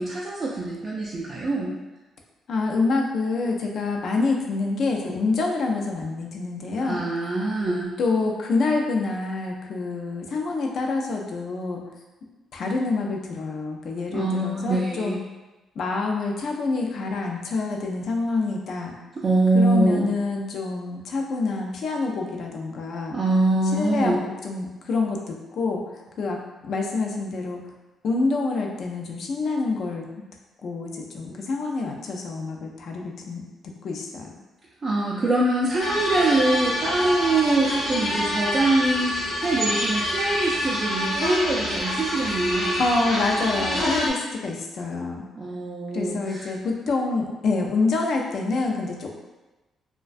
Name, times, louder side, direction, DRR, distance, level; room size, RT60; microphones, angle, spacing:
voice 1, 0.0-1.8 6.8-7.9 14.1-15.2 19.2-20.1 23.1-24.2 34.8-42.8 45.4-46.5, right 2 dB, 35° right, -5 dB, 0.3 m, -24 dB
voice 2, 2.5-7.0 8.0-11.8 12.5-15.2 15.8-19.0 19.5-23.2 23.7-24.1 24.4-25.8 26.2-26.4 26.6-27.6 28.0-30.1 30.6-33.4 33.8-34.3 42.8-45.2 45.9-49.2, left 3 dB, 60° left, 1 dB, 0.4 m, -26 dB
sound 1, 35.8-44.1, left 1 dB, 90° left, 0.8 m, -26 dB
2.3 x 2.1 x 2.4 m, 1.1 s
cardioid pair, 90°, 0 cm